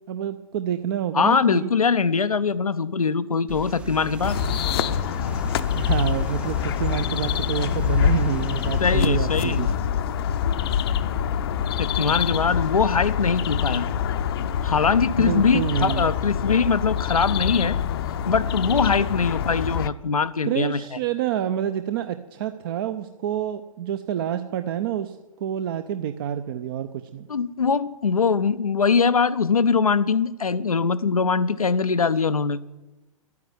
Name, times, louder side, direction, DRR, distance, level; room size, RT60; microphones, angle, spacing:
voice 1, 0.1-1.7 5.7-9.7 15.2-16.1 20.4-27.3, right 10 dB, 40° right, 10 dB, 0.7 m, -28 dB
voice 2, 1.1-4.4 8.8-9.6 11.8-13.9 14.6-17.8 18.2-20.8 27.3-32.6, left 5 dB, 80° left, 14 dB, 0.6 m, -22 dB
sound 1, 3.5-9.8, right 5 dB, 5° right, 0.4 m, -40 dB
sound 2, 4.2-19.9, left 8 dB, 45° left, 0.7 m, -25 dB
12.5 x 9.5 x 9.5 m, 1.0 s
figure-of-eight pair, 115°, 18 cm